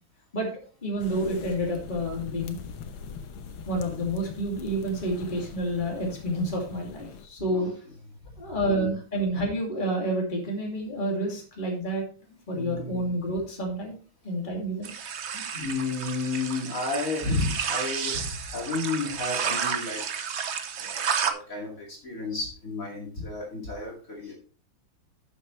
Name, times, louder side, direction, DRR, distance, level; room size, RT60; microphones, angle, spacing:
voice 1, 0.8-2.6 3.7-7.7 8.4-12.1 12.5-13.9 14.2-14.9, right 1 dB, 25° left, -1 dB, 2.7 m, -29 dB
sound 1, 1.0-7.3, left 6 dB, 80° left, 1.8 m, -42 dB
voice 2, 8.5-9.0 12.5-13.1 13.6-13.7 15.3-20.0 20.8-24.3, left 3 dB, 40° left, -2 dB, 2.7 m, -32 dB
sound 2, 14.8-21.3, right 7 dB, 60° right, 0.7 m, -31 dB
11.5 x 7.5 x 3.2 m, 0.40 s
omnidirectional pair, 2.2 m